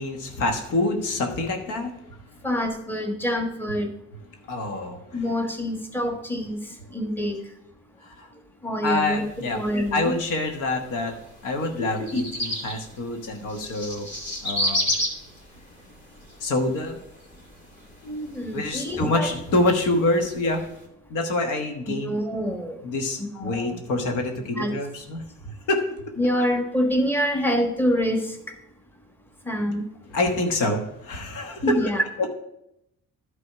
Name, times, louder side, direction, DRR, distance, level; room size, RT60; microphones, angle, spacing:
voice 1, 0.0-1.9 4.5-5.2 8.0-8.3 8.8-9.6 9.9-11.2 11.4-14.1 14.4-14.9 16.4-17.0 18.5-20.6 21.1-22.1 22.8-25.8 30.1-31.6 32.2-32.3, left 2 dB, 90° left, 4 dB, 1.3 m, -26 dB
voice 2, 2.4-3.9 5.1-6.6 6.9-7.4 8.6-9.2 9.5-10.2 11.8-12.2 18.0-19.3 22.0-22.8 23.2-23.8 24.5-24.7 26.2-28.5 29.5-29.8 31.6-32.0, equal, 5° left, 3 dB, 1.3 m, -26 dB
sound 1, 9.0-20.9, equal, 40° left, 2.6 m, -34 dB
11.0 x 4.1 x 5.9 m, 0.81 s
cardioid pair, 90°, 30 cm